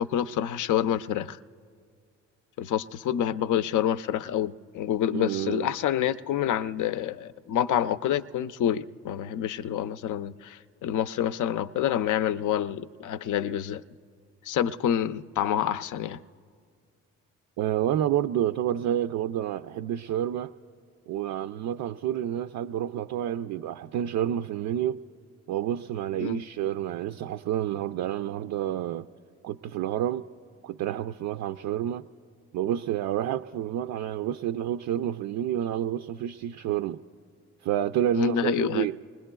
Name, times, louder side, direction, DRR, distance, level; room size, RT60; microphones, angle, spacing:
voice 1, 0.0-1.4 2.6-13.8 14.4-16.2 26.2-26.4 38.1-38.9, left 10 dB, 55° left, 0.5 m, -27 dB
voice 2, 5.1-5.7 17.6-20.5 21.1-25.0 25.5-29.1 29.4-30.2 30.6-32.0 32.5-37.0 37.6-39.0, right 11 dB, 60° right, 0.5 m, -29 dB
28.0 x 20.5 x 2.3 m
hypercardioid pair, 50°, 36 cm